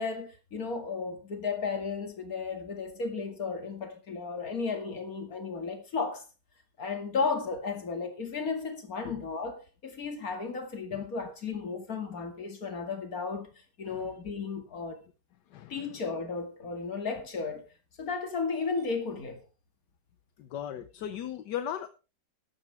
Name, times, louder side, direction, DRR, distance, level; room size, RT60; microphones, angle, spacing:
voice 1, 0.0-6.2 6.8-13.5 13.8-15.0 15.7-17.7 18.0-19.4, left 4 dB, 55° left, 2.7 m, -34 dB
voice 2, 15.5-15.9 20.4-21.9, left 10 dB, 75° left, 1.4 m, -37 dB
13.0 x 12.0 x 3.5 m
omnidirectional pair, 1.9 m